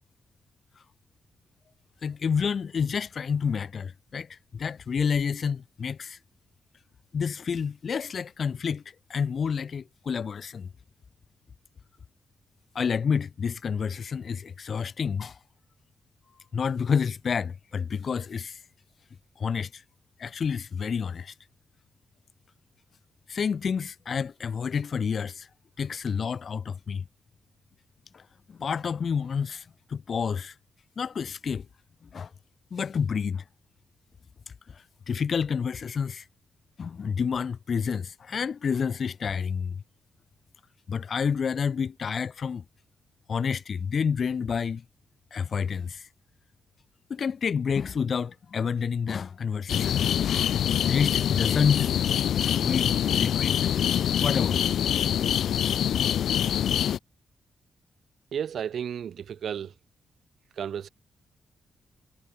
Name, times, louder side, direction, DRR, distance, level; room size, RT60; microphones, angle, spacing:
voice 1, 2.0-6.2 7.1-8.8 9.1-10.7 12.7-15.4 16.5-18.6 19.4-19.8 20.2-21.3 23.3-25.5 25.8-27.0 28.1-28.2 28.5-30.5 31.0-31.6 32.1-32.3 32.7-33.4 34.7-36.2 36.8-39.7 40.9-42.6 43.3-44.8 45.3-46.1 47.1-50.0 50.8-51.9 52.4-53.7 54.2-54.7, left 6 dB, 50° left, 6.6 m, -29 dB
sound 1, 49.7-57.0, left 9 dB, 80° left, 1.9 m, -25 dB
voice 2, 58.3-59.7 60.6-60.9, right 8 dB, 65° right, 7.2 m, -33 dB
cardioid pair, 125°, 0 cm